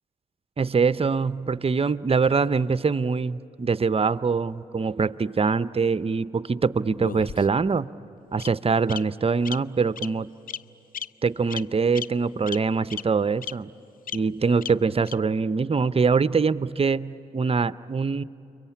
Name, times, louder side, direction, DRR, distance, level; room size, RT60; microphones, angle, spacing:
voice 1, 0.6-7.9 8.3-10.3 11.2-13.7 14.1-18.2, right 5 dB, 30° right, 16 dB, 0.7 m, -23 dB
Bird vocalization bird call bird song, 7.0-7.7 8.4-8.5 8.9-9.0 9.4-9.5 9.9-10.1 10.5-10.6 10.9-11.0 11.5-11.6 11.9-12.0 12.5-12.6 12.9-13.0 13.4-13.5 14.1-14.2 14.6-14.7 15.1-15.2, left 8 dB, 50° left, 0.6 m, -33 dB
29.5 x 23.0 x 8.5 m, 3.0 s
hypercardioid pair, 40°, 19 cm